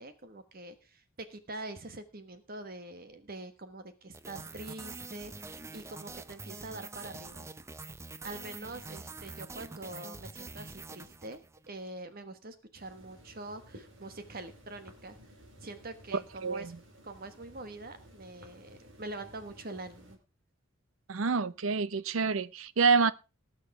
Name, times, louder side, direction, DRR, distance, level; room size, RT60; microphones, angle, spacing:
voice 1, 0.0-7.5 8.2-11.4 11.7-15.2 15.6-16.7 17.0-20.2, right 2 dB, 45° right, 1.3 m, -44 dB
sound 1, 4.1-11.7, right 3 dB, 15° right, 0.5 m, -45 dB
sound 2, 12.7-20.2, equal, 65° right, 3.3 m, -55 dB
voice 2, 21.1-23.1, right 5 dB, 85° right, 0.7 m, -27 dB
18.5 x 6.5 x 4.8 m
head